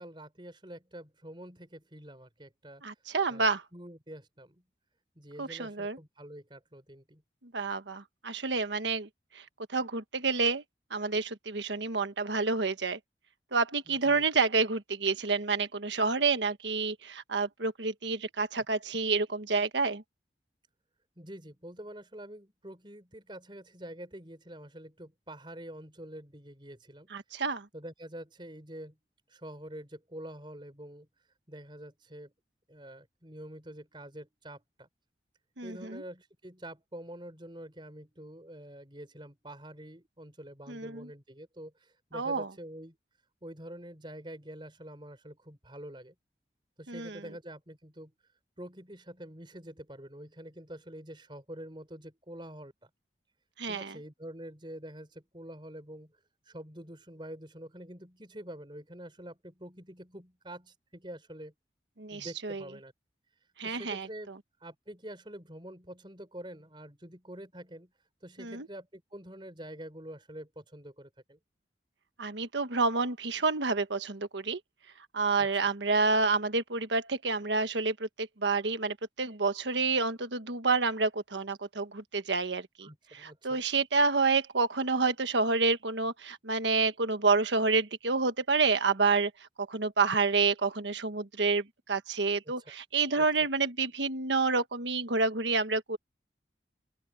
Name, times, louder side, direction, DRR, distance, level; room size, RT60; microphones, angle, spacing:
voice 1, 0.0-4.6 5.2-7.2 13.9-14.2 21.2-27.1 27.7-29.0 29.3-32.3 32.7-34.9 35.6-43.0 43.4-46.1 46.8-52.9 53.7-61.5 62.1-62.9 63.3-64.3 64.6-71.4 75.4-75.5 82.8-83.7 92.6-92.7 93.2-93.5, right 1 dB, 25° right, 4.8 m, -46 dB
voice 2, 2.8-3.6 5.4-6.0 7.5-9.1 9.7-10.6 10.9-13.0 13.5-20.0 27.1-27.7 35.6-36.0 40.7-41.1 42.1-42.5 46.9-47.2 53.6-53.9 62.0-62.6 63.6-64.1 68.4-68.7 72.2-74.6 75.1-82.9 83.2-89.3 89.6-96.0, right 4 dB, 85° right, 1.4 m, -29 dB
open air
head